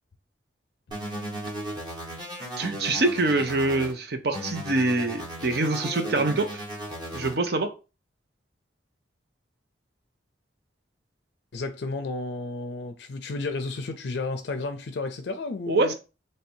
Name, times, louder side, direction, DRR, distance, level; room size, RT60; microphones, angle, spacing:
sound 1, 0.9-3.9 4.3-7.3, equal, 25° right, 1.4 m, -36 dB
voice 1, 2.6-6.6 7.1-7.7 15.7-15.9, right 2 dB, 60° right, 0.7 m, -25 dB
voice 2, 11.5-15.9, left 3 dB, 65° left, 0.4 m, -32 dB
3.2 x 2.7 x 4.4 m
head